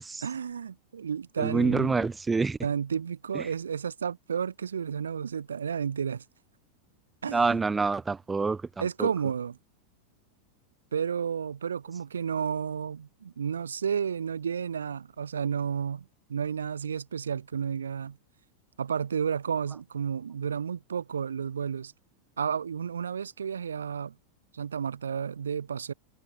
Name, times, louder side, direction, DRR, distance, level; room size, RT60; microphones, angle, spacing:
voice 1, 0.2-2.1 2.6-6.2 7.2-7.6 8.8-9.6 10.9-16.0 16.3-18.2 18.8-21.9 22.4-24.1 24.5-25.9, right 7 dB, 70° right, 0.6 m, -31 dB
voice 2, 1.4-2.6 3.3-3.5 7.3-9.1, right 4 dB, 10° right, 0.4 m, -27 dB
figure-of-eight pair, 90°, 0 cm